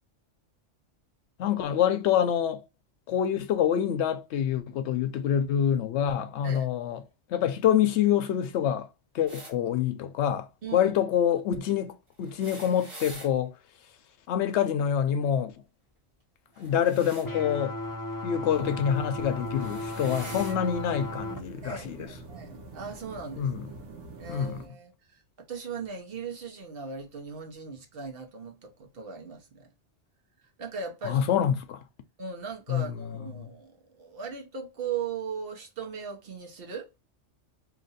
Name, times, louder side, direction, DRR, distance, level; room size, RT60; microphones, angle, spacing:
voice 1, 1.4-2.6 3.1-7.0 7.3-8.9 9.1-13.5 14.3-15.5 16.6-17.8 18.2-22.1 23.4-23.7 24.3-24.6 31.0-31.8 32.7-33.1 33.4-33.5, left 9 dB, 75° left, 0.8 m, -26 dB
sound 1, 9.3-9.5 12.2-13.3 16.5-17.3 18.6-18.9 19.5-20.6 21.6-21.7 22.9-23.0, right 1 dB, 30° right, 0.9 m, -45 dB
voice 2, 10.6-10.9 20.2-20.6 21.6-23.6 24.2-29.7 30.4-31.2 32.2-36.9, right 5 dB, 55° right, 1.0 m, -38 dB
sound 2, 17.2-21.4, left 1 dB, 30° left, 0.3 m, -35 dB
sound 3, 18.5-24.7, right 3 dB, 85° right, 1.2 m, -45 dB
2.8 x 2.5 x 3.9 m
omnidirectional pair, 1.2 m